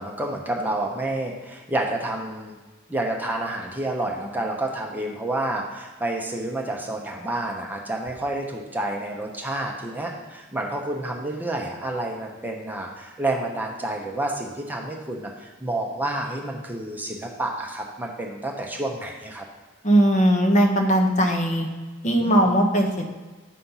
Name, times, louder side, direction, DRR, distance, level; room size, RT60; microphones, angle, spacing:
voice 1, 0.0-2.6 2.9-19.5 22.2-22.5, right 1 dB, 10° right, 0 dB, 0.8 m, -29 dB
voice 2, 19.8-21.7 22.0-23.0, right 1 dB, 35° left, 2 dB, 1.0 m, -19 dB
9.2 x 4.2 x 5.6 m, 1.3 s
head